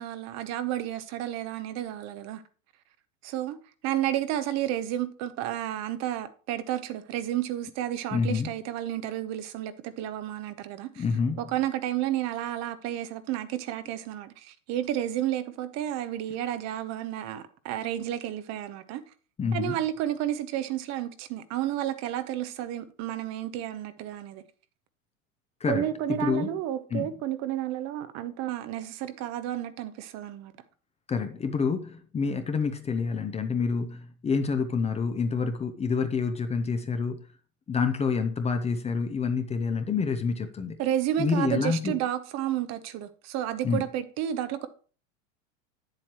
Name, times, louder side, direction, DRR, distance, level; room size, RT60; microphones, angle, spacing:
voice 1, 0.0-2.4 3.2-3.6 3.8-11.0 11.4-19.0 19.5-24.4 25.7-30.5 40.8-44.7, right 12 dB, 40° right, 0.9 m, -31 dB
voice 2, 8.1-8.5 11.0-11.5 19.4-19.8 25.6-25.9 26.2-26.6 26.9-27.1 31.1-37.2 37.7-40.8 41.2-42.0 43.6-43.8, left 5 dB, 15° left, 0.7 m, -28 dB
8.6 x 7.7 x 3.0 m
hypercardioid pair, 95°, 40 cm